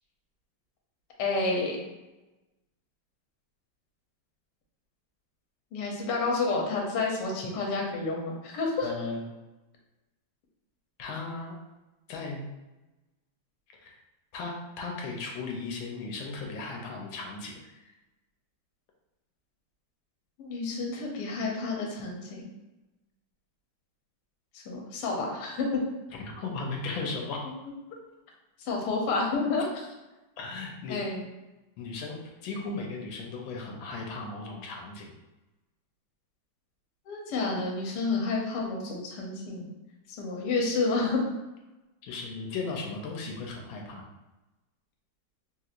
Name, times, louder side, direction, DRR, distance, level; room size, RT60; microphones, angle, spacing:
voice 1, 1.2-1.8 5.7-8.9 20.4-22.4 24.5-25.8 28.6-29.9 30.9-31.2 37.1-39.7 40.1-41.2, left 3 dB, 70° left, -1 dB, 1.2 m, -30 dB
voice 2, 8.8-9.2 11.0-11.6 12.1-12.4 13.8-13.9 14.3-17.6 26.1-27.5 30.4-31.0 31.8-35.1 42.0-44.0, left 3 dB, 90° left, 0 dB, 1.4 m, -36 dB
3.2 x 2.8 x 2.4 m, 1.0 s
omnidirectional pair, 2.1 m